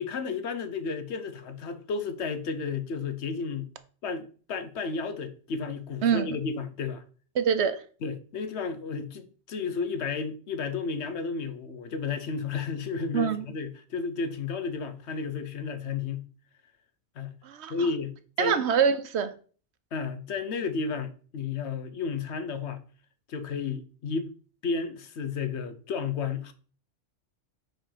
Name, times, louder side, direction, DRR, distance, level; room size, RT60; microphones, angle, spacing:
voice 1, 0.0-3.7 4.0-7.0 8.0-16.3 17.2-17.3 17.7-18.6 19.9-22.8 23.3-24.3 24.6-26.5, left 5 dB, 70° left, 1.1 m, -32 dB
voice 2, 6.0-6.4 7.4-7.8 13.1-13.5 17.4-17.7 18.4-19.3, right 7 dB, 70° right, 1.0 m, -25 dB
5.2 x 4.5 x 5.7 m
omnidirectional pair, 1.2 m